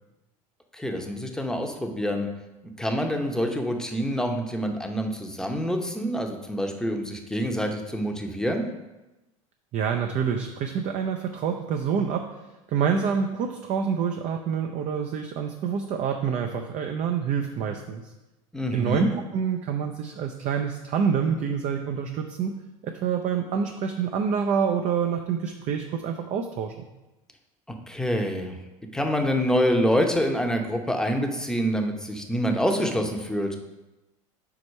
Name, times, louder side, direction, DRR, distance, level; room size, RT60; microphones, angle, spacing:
voice 1, 0.7-2.3 2.8-8.7 18.5-19.1 27.9-28.6 28.9-33.6, equal, 5° left, 3 dB, 0.8 m, -26 dB
voice 2, 9.7-12.2 12.7-18.1 18.7-22.6 22.8-26.7, right 7 dB, 45° right, 4 dB, 0.6 m, -27 dB
4.7 x 4.2 x 5.4 m, 1.0 s
hypercardioid pair, 85°, 17 cm